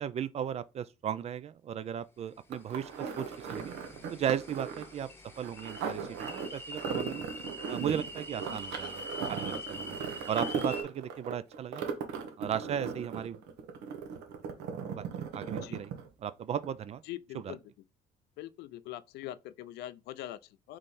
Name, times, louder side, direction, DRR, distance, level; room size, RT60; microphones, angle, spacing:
voice 1, 0.0-3.7 4.1-5.1 5.4-7.2 7.7-10.0 10.3-11.8 12.4-13.4 14.9-15.0 15.3-15.9 16.2-17.0 17.3-17.6, right 9 dB, 40° right, 0.4 m, -36 dB
sound 1, 2.5-16.3 16.6-16.7, right 6 dB, 85° right, 0.9 m, -37 dB
sound 2, 2.7-10.8, left 2 dB, 15° left, 0.9 m, -45 dB
voice 2, 17.1-17.6 18.4-20.8, left 14 dB, 80° left, 0.4 m, -43 dB
3.7 x 3.2 x 4.1 m
cardioid pair, 110°, 17 cm